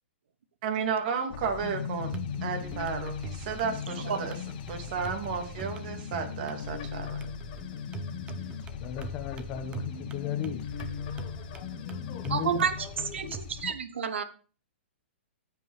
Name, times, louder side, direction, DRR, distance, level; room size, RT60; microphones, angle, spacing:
voice 1, 0.6-2.1 2.4-4.4 4.7-7.3, right 6 dB, 45° right, 2.1 m, -33 dB
sound 1, 1.3-13.7, left 7 dB, 50° left, 1.5 m, -38 dB
sound 2, 2.0-13.5, right 3 dB, 15° right, 0.7 m, -44 dB
voice 2, 8.3-13.4, left 9 dB, 30° left, 1.1 m, -38 dB
voice 3, 12.3-12.7 13.1-14.2, right 7 dB, 80° right, 0.9 m, -29 dB
15.0 x 5.2 x 3.2 m
hypercardioid pair, 145°, 6 cm